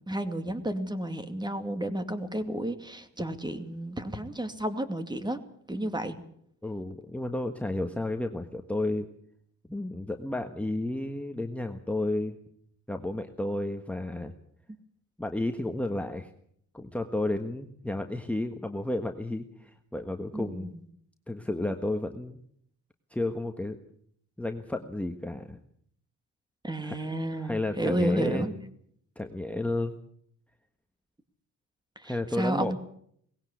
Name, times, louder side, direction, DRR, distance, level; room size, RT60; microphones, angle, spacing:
voice 1, 0.1-5.4 5.7-6.2 20.3-20.7 26.6-28.5 32.0-32.8, right 1 dB, 15° right, 9 dB, 2.4 m, -31 dB
voice 2, 6.6-9.1 9.7-12.4 12.9-14.3 15.2-16.3 16.7-20.7 21.3-22.4 23.1-23.8 24.4-25.6 26.8-26.9 27.4-28.5 29.2-29.9 32.0-32.8, left 1 dB, 5° left, 5 dB, 1.4 m, -32 dB
19.0 x 16.5 x 8.4 m, 0.67 s
cardioid pair, 90°, 30 cm